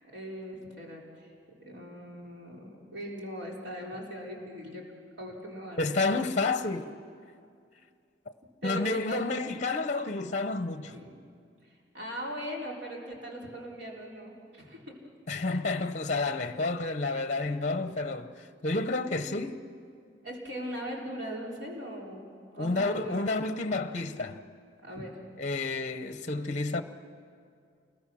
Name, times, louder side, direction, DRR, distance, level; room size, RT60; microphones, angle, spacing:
voice 1, 0.0-1.3 1.6-4.8 5.2-6.1 8.6-9.2 10.8-11.2 11.9-14.9 20.2-23.3 24.8-25.1, equal, 70° right, 4.0 m, -40 dB
voice 2, 5.8-6.9 8.6-10.9 15.3-18.3 18.6-19.6 22.6-24.4 25.4-26.8, left 3 dB, 40° left, 0.8 m, -30 dB
29.0 x 21.5 x 6.3 m
head